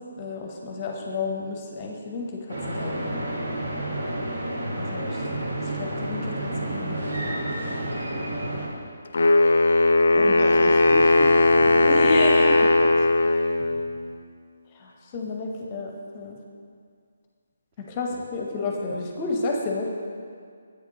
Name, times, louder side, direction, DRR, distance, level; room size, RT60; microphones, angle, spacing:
voice 1, 0.2-3.0 4.8-5.2 5.7-7.3 11.8-12.7 14.7-16.4 17.8-19.9, left 3 dB, 25° left, 1 dB, 0.7 m, -31 dB
sound 1, 2.5-8.7, right 1 dB, 65° right, 1.3 m, -30 dB
Wind instrument woodwind instrument, 9.1-14.1, left 2 dB, 60° left, 0.4 m, -18 dB
voice 2, 9.9-11.9 12.5-13.1 13.6-13.7, right 2 dB, 25° right, -1 dB, 0.7 m, -34 dB
8.2 x 5.8 x 2.9 m, 2.1 s
figure-of-eight pair, 145°, 0 cm